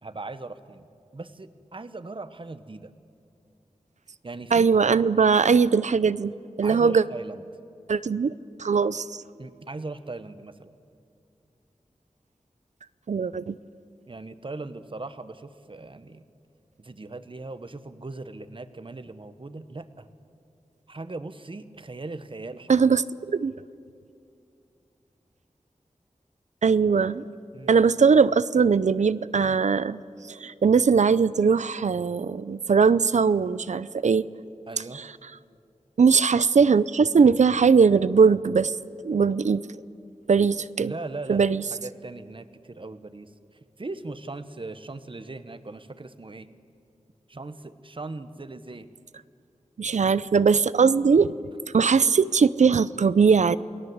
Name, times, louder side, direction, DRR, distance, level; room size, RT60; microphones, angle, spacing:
voice 1, 0.0-0.9 1.1-2.9 4.2-4.7 6.6-7.4 9.4-10.7 14.1-16.2 16.8-20.1 20.9-22.7 27.5-27.8 34.7-35.0 40.8-41.4 41.7-43.3 43.8-46.5 47.3-48.9, right 3 dB, 45° right, 11 dB, 1.2 m, -39 dB
voice 2, 4.5-6.3 6.6-7.0 7.9-8.3 8.6-9.2 13.1-13.5 22.7-23.0 23.3-23.5 26.6-27.2 27.6-30.0 30.3-34.3 36.0-38.7 39.0-39.6 40.3-40.9 41.3-41.6 49.8-51.3 51.7-53.6, right 5 dB, 75° right, 16 dB, 0.6 m, -20 dB
28.5 x 19.0 x 8.0 m, 2.5 s
wide cardioid pair, 70°, 12 cm